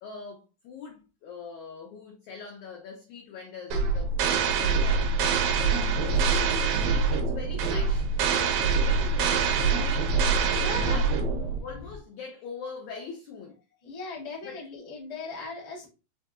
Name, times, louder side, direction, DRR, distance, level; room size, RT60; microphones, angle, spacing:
voice 1, 0.0-8.1 8.8-10.1 10.5-13.6 14.4-14.6, left 5 dB, 80° left, 1.7 m, -42 dB
sound 1, 3.7-11.6, right 5 dB, 80° right, 2.3 m, -25 dB
sound 2, 5.1-12.0, left 5 dB, 65° left, 1.5 m, -43 dB
voice 2, 10.6-11.0 13.8-15.9, left 3 dB, 35° left, 0.5 m, -38 dB
5.7 x 2.7 x 2.4 m
omnidirectional pair, 4.4 m